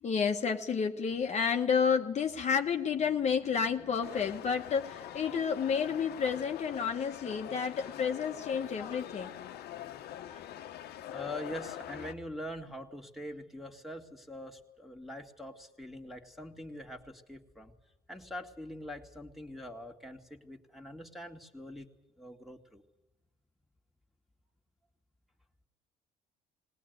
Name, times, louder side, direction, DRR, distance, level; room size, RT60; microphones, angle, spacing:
voice 1, 0.0-9.3 10.3-10.5, left 6 dB, 40° left, 4 dB, 1.1 m, -30 dB
sound 1, 4.0-12.1, left 11 dB, 70° left, 1.1 m, -44 dB
voice 2, 11.1-17.7 18.1-21.9 22.2-22.8, left 1 dB, ahead, 4 dB, 2.0 m, -43 dB
20.0 x 18.5 x 9.3 m, 0.95 s
cardioid pair, 110°, 17 cm